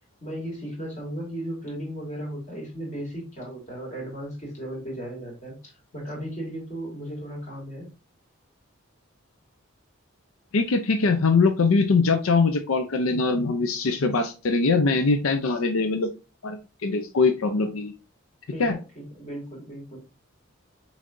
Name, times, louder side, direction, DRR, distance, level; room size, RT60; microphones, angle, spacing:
voice 1, 0.2-7.9 18.5-20.0, right 1 dB, 35° left, -3 dB, 2.6 m, -36 dB
voice 2, 10.5-16.1 16.4-17.9 18.6-18.8, left 4 dB, 85° left, 7 dB, 0.6 m, -22 dB
6.4 x 3.3 x 2.6 m, 0.31 s
head